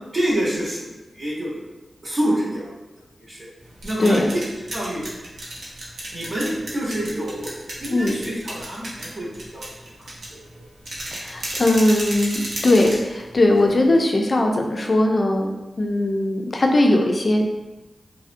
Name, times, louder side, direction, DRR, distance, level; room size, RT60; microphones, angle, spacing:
voice 1, 0.1-1.7 2.0-2.8 3.2-3.5 3.8-4.4 4.7-5.0 6.1-7.5 7.8-9.3 9.5-10.1, right 1 dB, 45° right, -7 dB, 0.8 m, -27 dB
sound 1, 3.6-14.0, right 1 dB, 85° right, 0.6 m, -34 dB
voice 2, 4.0-4.3 7.9-8.2 11.1-15.5 15.8-17.5, left 1 dB, 45° left, 2 dB, 0.3 m, -19 dB
2.4 x 2.1 x 2.5 m, 1.1 s
wide cardioid pair, 75°, 0 cm